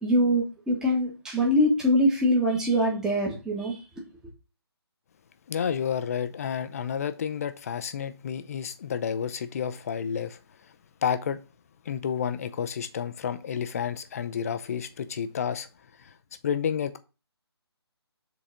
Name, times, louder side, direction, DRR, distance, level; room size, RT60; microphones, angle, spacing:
voice 1, 0.0-3.8, equal, 5° right, 1.5 m, -23 dB
voice 2, 5.5-10.4 11.0-11.4 11.9-15.7 16.4-17.0, left 8 dB, 35° left, 0.7 m, -30 dB
7.5 x 4.1 x 5.0 m
figure-of-eight pair, 155°, 14 cm